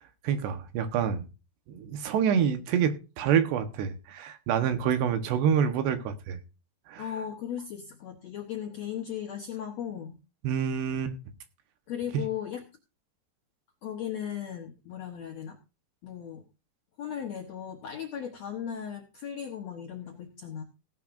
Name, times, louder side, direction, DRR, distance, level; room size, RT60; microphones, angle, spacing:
voice 1, 0.2-1.2 1.7-6.4 6.9-7.0 10.4-11.1, right 8 dB, 80° right, 3.4 m, -27 dB
voice 2, 7.0-10.2 11.9-12.6 13.8-15.6 16.0-16.4 17.0-20.6, left 9 dB, 70° left, 1.6 m, -37 dB
17.0 x 11.0 x 2.6 m
omnidirectional pair, 4.8 m